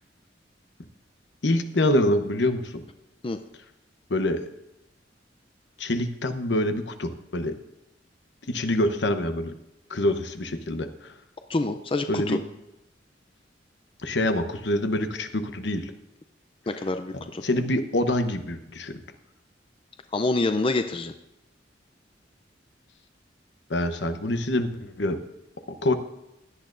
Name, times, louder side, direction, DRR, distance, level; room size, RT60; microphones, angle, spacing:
voice 1, 1.4-2.8 4.1-4.5 5.8-7.6 8.5-9.5 9.9-11.1 12.1-12.4 14.0-15.9 17.1-19.0 23.7-25.2 25.7-25.9, left 1 dB, 70° left, 8 dB, 0.9 m, -26 dB
voice 2, 11.5-12.4 16.7-17.4 20.1-21.1, left 2 dB, 30° left, 8 dB, 0.4 m, -26 dB
17.0 x 10.5 x 2.6 m, 0.90 s
head